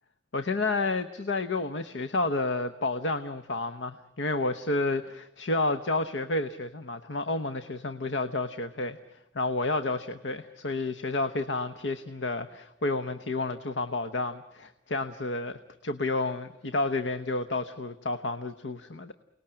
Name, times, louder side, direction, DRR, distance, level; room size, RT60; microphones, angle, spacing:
voice 1, 0.3-9.0 9.3-19.1, left 2 dB, 70° left, 10 dB, 1.0 m, -30 dB
29.5 x 19.5 x 8.9 m, 1.0 s
head